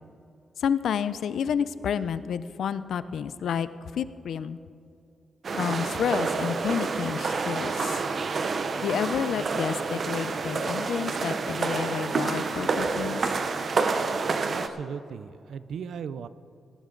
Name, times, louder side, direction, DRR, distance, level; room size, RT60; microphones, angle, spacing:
voice 1, 0.6-3.7 3.9-4.6 5.5-8.0 8.8-13.2, left 8 dB, 75° left, 14 dB, 0.5 m, -30 dB
sound 1, 5.4-14.7, right 4 dB, 45° right, 0.8 m, -28 dB
voice 2, 14.5-16.3, right 7 dB, 75° right, 14 dB, 0.5 m, -37 dB
19.0 x 12.0 x 3.9 m, 2.5 s
wide cardioid pair, 135°, 0 cm